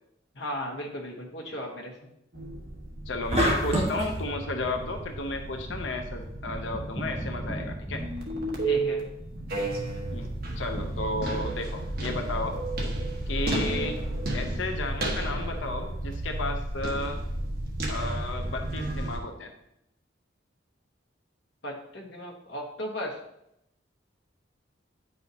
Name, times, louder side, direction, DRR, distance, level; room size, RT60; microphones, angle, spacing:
voice 1, 0.3-2.0 8.6-9.0 21.6-23.2, equal, 65° left, -1 dB, 1.5 m, -36 dB
sound 1, 2.3-19.2, right 2 dB, 55° right, 1.4 m, -33 dB
voice 2, 3.1-8.0 10.1-12.6 13.3-14.0 14.3-17.2 17.9-19.5, left 2 dB, 80° left, 5 dB, 0.7 m, -33 dB
sound 2, 3.3-4.2, equal, 35° right, 1.7 m, -25 dB
sound 3, 5.1-13.4, right 1 dB, 5° left, 1.0 m, -41 dB
9.6 x 5.5 x 2.9 m, 0.81 s
head